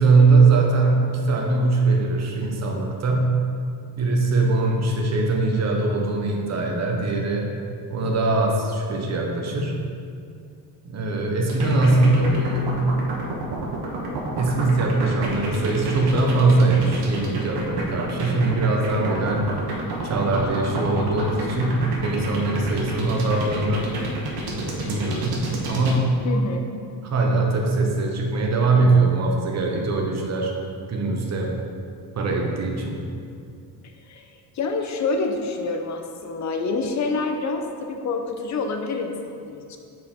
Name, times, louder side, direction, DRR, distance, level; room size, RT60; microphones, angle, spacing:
voice 1, 0.0-3.3 4.0-7.5 7.9-9.7 10.8-12.7 14.4-19.5 20.0-23.9 24.5-25.4 25.7-26.2 27.0-30.5 30.9-31.5 32.2-33.0, right 3 dB, 40° right, 0 dB, 1.1 m, -21 dB
sound 1, 11.5-26.0, right 3 dB, 75° right, 1.3 m, -29 dB
voice 2, 26.2-26.7 34.0-39.8, left 3 dB, 40° left, 4 dB, 0.8 m, -27 dB
7.5 x 4.4 x 3.8 m, 2.4 s
cardioid pair, 115°, 41 cm